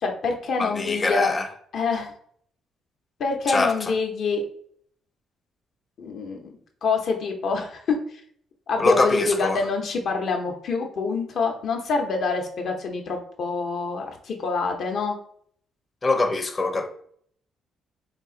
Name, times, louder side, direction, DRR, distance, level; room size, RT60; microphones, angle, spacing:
voice 1, 0.0-1.3 1.7-2.1 3.2-4.4 6.0-6.5 6.8-8.2 8.7-15.2, left 4 dB, 65° left, 0.7 m, -26 dB
voice 2, 0.6-1.5 3.5-3.9 8.8-9.6 16.0-16.9, left 3 dB, 30° left, 0.6 m, -23 dB
3.7 x 2.4 x 3.8 m
cardioid pair, 90°, 0 cm